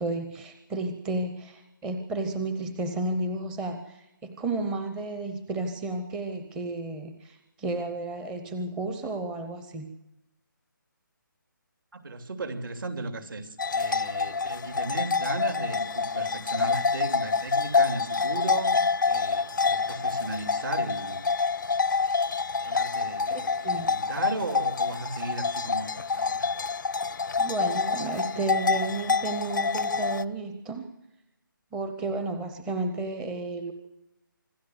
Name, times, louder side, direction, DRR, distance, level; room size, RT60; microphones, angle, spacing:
voice 1, 0.0-9.9 23.3-23.9 27.4-30.9 31.7-33.7, right 2 dB, 5° right, 7 dB, 0.6 m, -32 dB
voice 2, 11.9-21.3 21.7-21.8 22.6-26.5, right 3 dB, 70° right, 7 dB, 3.0 m, -36 dB
sound 1, 13.6-30.2, left 4 dB, 65° left, 0.6 m, -27 dB
26.0 x 13.0 x 7.9 m, 0.91 s
hypercardioid pair, 170°, 11 cm